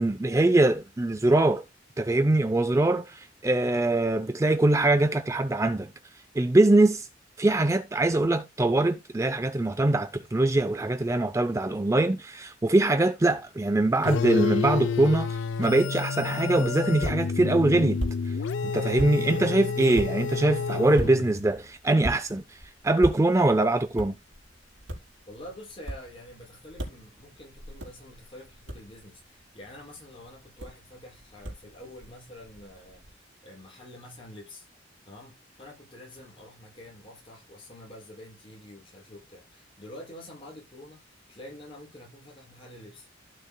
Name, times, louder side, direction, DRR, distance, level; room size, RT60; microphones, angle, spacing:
voice 1, 0.0-1.6 2.0-5.9 6.3-7.1 7.4-18.4 18.6-24.1, right 2 dB, 15° right, 0.4 m, -23 dB
sound 1, 14.0-21.5, left 5 dB, 70° left, 0.4 m, -29 dB
sound 2, 16.4-33.1, right 1 dB, 80° right, 4.3 m, -41 dB
voice 2, 25.3-34.7 35.0-43.1, left 1 dB, 30° left, 6.2 m, -47 dB
15.5 x 6.8 x 2.2 m
head